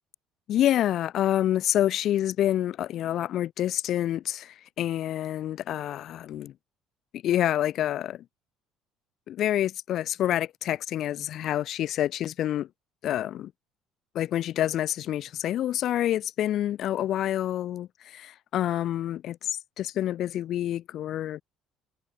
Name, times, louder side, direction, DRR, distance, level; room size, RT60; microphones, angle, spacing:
voice 1, 0.5-6.5 7.1-8.2 9.3-12.7 13.0-13.5 14.1-21.4, left 12 dB, 60° left, 2.6 m, -27 dB
cardioid pair, 105°, 0 cm